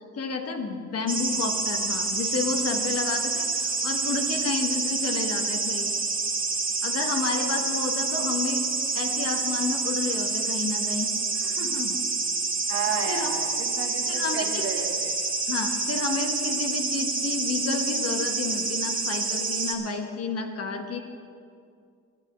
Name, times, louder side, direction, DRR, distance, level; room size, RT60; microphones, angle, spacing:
voice 1, 0.0-5.9 6.8-8.6 8.9-12.0 13.1-13.3 14.1-14.6 15.5-21.0, left 4 dB, 55° left, 4 dB, 1.4 m, -31 dB
sound 1, 1.1-19.7, right 4 dB, 30° right, 1.9 m, -28 dB
voice 2, 12.7-15.2, right 5 dB, 45° right, 1 dB, 2.1 m, -32 dB
11.5 x 9.0 x 7.5 m, 2.3 s
cardioid pair, 90°, 30 cm